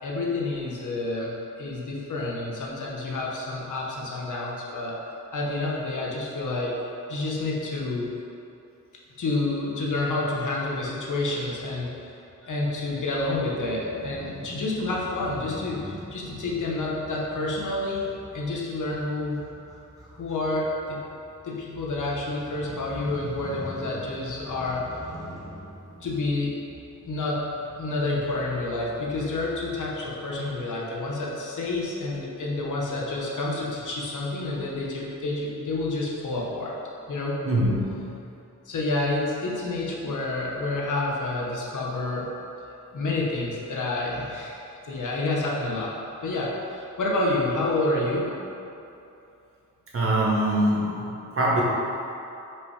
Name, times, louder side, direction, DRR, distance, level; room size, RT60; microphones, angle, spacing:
voice 1, 0.0-5.0 5.3-6.8 7.1-8.1 9.2-11.9 12.4-19.4 20.2-21.0 21.4-24.8 26.0-26.6 27.0-27.5 27.8-36.7 37.1-37.4 38.6-42.3 42.9-48.3, left 2 dB, 75° left, -3 dB, 1.2 m, -29 dB
Crow / Motorcycle, 12.6-30.5, right 1 dB, 10° right, 1.1 m, -45 dB
voice 2, 37.4-38.0 49.9-51.6, right 1 dB, 45° right, -5 dB, 1.3 m, -23 dB
5.6 x 5.2 x 4.9 m, 2.8 s
wide cardioid pair, 160°, 31 cm